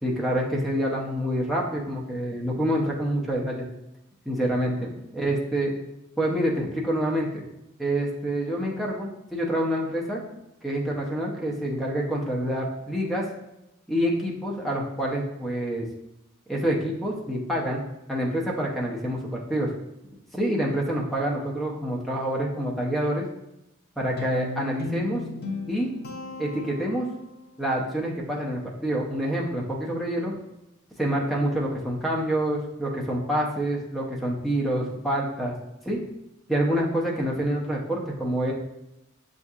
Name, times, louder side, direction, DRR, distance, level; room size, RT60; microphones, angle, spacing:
voice 1, 0.0-3.7 4.3-5.7 6.2-7.4 7.8-10.2 10.6-13.2 13.9-15.9 16.5-19.7 20.3-23.3 24.0-25.2 25.7-25.9 26.4-27.1 27.6-30.3 31.0-35.5 35.9-36.0 36.5-38.5, equal, ahead, -4 dB, 0.5 m, -27 dB
Guitar, 24.2-27.4, left 3 dB, 50° left, 0.6 m, -36 dB
6.8 x 2.7 x 2.3 m, 0.89 s
head